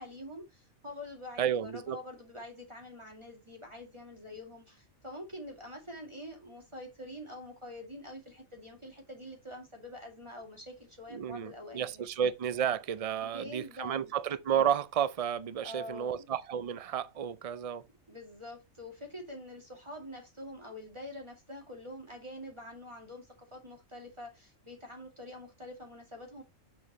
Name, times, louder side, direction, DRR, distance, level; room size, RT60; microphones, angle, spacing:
voice 1, 0.0-12.1 13.2-14.1 15.6-16.3 18.1-26.4, left 1 dB, 20° right, 2.4 m, -46 dB
voice 2, 1.4-2.0 11.1-17.8, right 9 dB, 65° right, 0.3 m, -32 dB
6.8 x 6.5 x 3.0 m
omnidirectional pair, 1.4 m